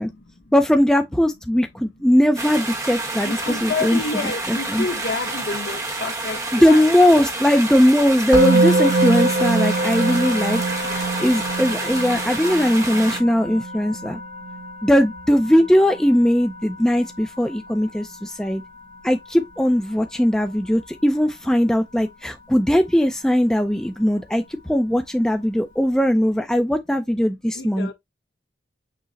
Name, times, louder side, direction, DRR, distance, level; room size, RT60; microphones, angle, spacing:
voice 1, 0.0-0.5 3.2-6.9 14.1-14.6 25.5-25.6 27.5-27.9, left 4 dB, 80° left, 1.1 m, -30 dB
voice 2, 0.5-4.0 4.5-4.8 6.5-10.6 10.9-14.2 14.8-18.6 19.0-27.9, equal, 5° left, 0.4 m, -19 dB
sound 1, 2.4-13.2, right 2 dB, 20° right, 0.9 m, -29 dB
Musical instrument, 8.3-19.4, right 2 dB, 50° right, 1.3 m, -25 dB
6.2 x 2.1 x 4.0 m
head